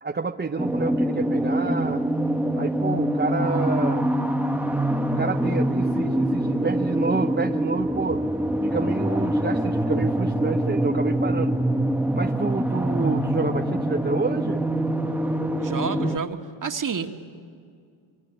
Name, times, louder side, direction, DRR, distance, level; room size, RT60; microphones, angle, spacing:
voice 1, 0.0-2.0 2.6-4.1 5.2-8.2 8.6-11.6 12.1-14.6, right 4 dB, 20° right, 3 dB, 1.0 m, -28 dB
sound 1, 0.6-16.2, right 1 dB, 5° right, 1.3 m, -24 dB
voice 2, 15.6-17.1, right 6 dB, 40° right, 5 dB, 2.2 m, -29 dB
24.0 x 23.5 x 9.8 m, 2.2 s
supercardioid pair, 70°, 49 cm